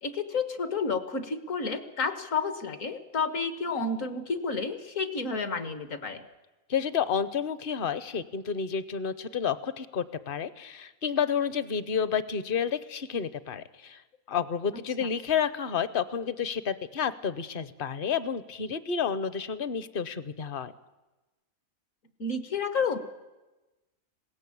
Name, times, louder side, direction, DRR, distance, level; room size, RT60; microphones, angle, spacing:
voice 1, 0.0-6.2 14.7-15.1 22.2-23.0, left 4 dB, 70° left, 10 dB, 1.7 m, -31 dB
voice 2, 6.7-14.0 14.3-20.7, left 7 dB, 45° left, 15 dB, 0.9 m, -30 dB
20.5 x 17.5 x 8.6 m, 1.1 s
omnidirectional pair, 1.4 m